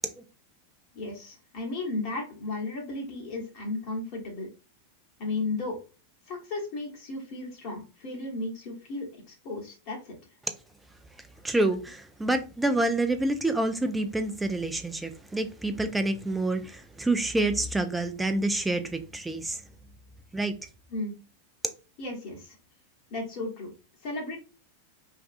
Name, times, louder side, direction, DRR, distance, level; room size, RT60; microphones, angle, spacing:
voice 1, 0.9-4.5 5.2-5.8 6.3-10.1 20.9-21.1 22.0-22.6 23.1-23.7 24.0-24.4, left 2 dB, 45° left, 1.0 m, -34 dB
voice 2, 11.4-19.6 20.3-20.5, right 2 dB, 5° right, 0.4 m, -27 dB
2.5 x 2.2 x 2.5 m
figure-of-eight pair, 90°, 0 cm